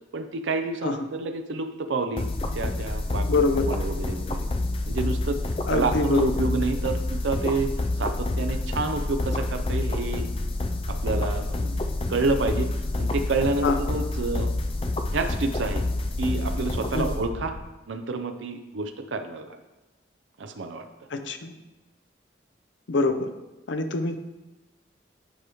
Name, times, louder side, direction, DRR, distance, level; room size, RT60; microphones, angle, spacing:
voice 1, 0.1-2.3 2.5-4.5 4.9-5.4 5.7-7.7 8.0-10.3 10.9-11.8 12.1-12.7 13.0-14.5 15.1-15.8 16.2-17.6 17.9-19.6 20.4-20.9, right 3 dB, 90° right, 7 dB, 0.5 m, -29 dB
sound 1, 2.2-17.6, left 2 dB, 30° left, 0.4 m, -28 dB
voice 2, 3.3-3.7 5.7-6.4 13.6-13.8 16.9-17.1 21.1-21.5 22.9-23.3 23.7-24.2, left 3 dB, 85° left, 8 dB, 0.6 m, -24 dB
9.2 x 4.8 x 3.0 m, 1.1 s
head